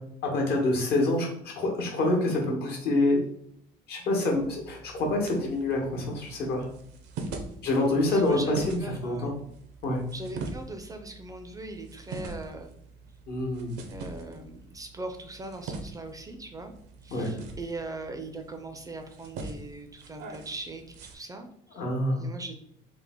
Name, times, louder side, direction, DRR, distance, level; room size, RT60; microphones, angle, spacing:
voice 1, 0.2-3.2 3.9-6.7 7.6-9.3 9.8-10.0 13.3-13.7 17.1-17.3 21.7-22.3, left 2 dB, 70° left, 0 dB, 1.0 m, -26 dB
sound 1, 4.3-21.2, right 3 dB, 80° right, 0.6 m, -43 dB
voice 2, 8.1-9.4 10.1-12.7 13.9-16.7 17.0-20.8 21.1-21.8 22.2-22.6, right 2 dB, 20° right, 6 dB, 0.4 m, -40 dB
3.3 x 2.0 x 3.5 m, 0.69 s
cardioid pair, 110°, 17 cm